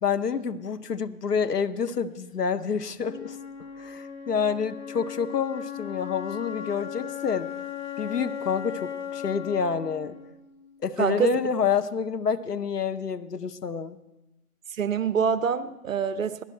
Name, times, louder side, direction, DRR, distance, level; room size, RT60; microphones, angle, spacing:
voice 1, 0.0-3.4 3.8-7.5 8.0-10.1 10.8-14.0, left 6 dB, 90° left, 11 dB, 0.9 m, -28 dB
Wind instrument woodwind instrument, 3.0-11.0, left 9 dB, 40° left, 1.4 m, -37 dB
voice 2, 11.0-11.3 14.8-16.4, right 7 dB, 60° right, 13 dB, 0.7 m, -25 dB
17.0 x 12.5 x 4.4 m, 0.99 s
figure-of-eight pair, 145°, 46 cm